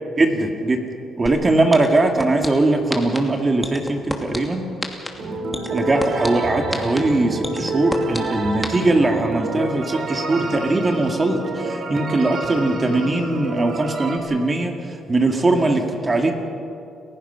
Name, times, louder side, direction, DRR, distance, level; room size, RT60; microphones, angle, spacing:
voice 1, 0.2-0.8 1.1-4.7 5.7-14.7 15.1-16.3, right 2 dB, 30° right, 3 dB, 2.2 m, -20 dB
sound 1, 1.3-1.4 1.7-2.5 2.9-3.2 3.6-4.4 4.8-5.1 5.5-6.3 6.7-7.0 7.4-8.2 8.6-8.7, left 1 dB, 5° left, 2.5 m, -26 dB
sound 2, 5.2-14.2, right 2 dB, 60° right, 3.5 m, -28 dB
29.5 x 15.5 x 5.7 m, 2.7 s
cardioid pair, 90°, 0 cm